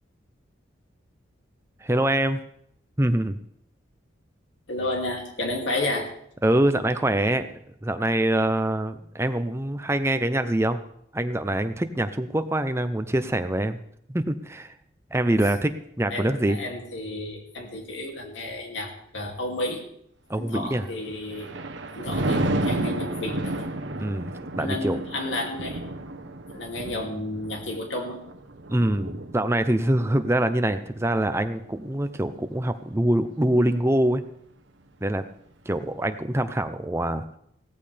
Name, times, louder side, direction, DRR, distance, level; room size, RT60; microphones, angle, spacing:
voice 1, 1.8-2.4 3.0-3.4 6.4-10.8 11.1-13.8 14.1-14.7 15.1-16.6 20.3-20.8 24.0-25.0 28.7-34.2 35.0-35.2 35.7-37.4, right 1 dB, 15° right, 10 dB, 0.6 m, -24 dB
voice 2, 4.7-6.1 16.1-19.8 20.4-21.5 21.9-23.7 24.5-25.8 26.5-28.2, left 2 dB, 75° left, 1 dB, 2.6 m, -31 dB
Thunder, 21.0-32.5 32.9-33.3, right 1 dB, 70° right, 1.0 m, -32 dB
16.5 x 14.0 x 3.4 m, 0.70 s
head